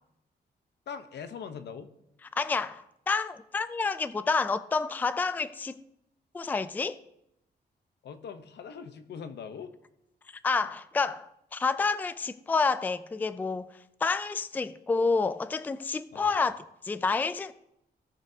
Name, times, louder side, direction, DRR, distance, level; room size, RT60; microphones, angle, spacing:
voice 1, 0.9-1.9 8.0-9.7 16.1-16.3, left 6 dB, 80° left, 0.8 m, -41 dB
voice 2, 2.4-5.8 6.3-7.0 10.4-13.7 14.0-17.5, left 4 dB, 10° left, 0.3 m, -29 dB
17.5 x 6.4 x 2.7 m
wide cardioid pair, 130°, 17 cm